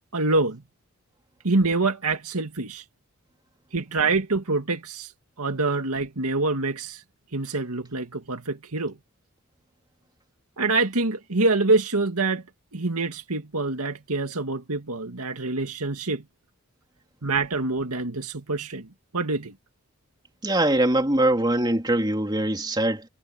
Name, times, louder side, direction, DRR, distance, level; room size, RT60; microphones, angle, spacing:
voice 1, 0.1-0.6 1.4-2.8 3.7-5.1 5.4-7.0 7.3-9.0 10.6-12.4 12.7-16.2 17.2-18.9 19.1-19.5, right 3 dB, 90° right, 2.2 m, -25 dB
voice 2, 20.4-23.0, right 1 dB, 20° right, 3.2 m, -22 dB
head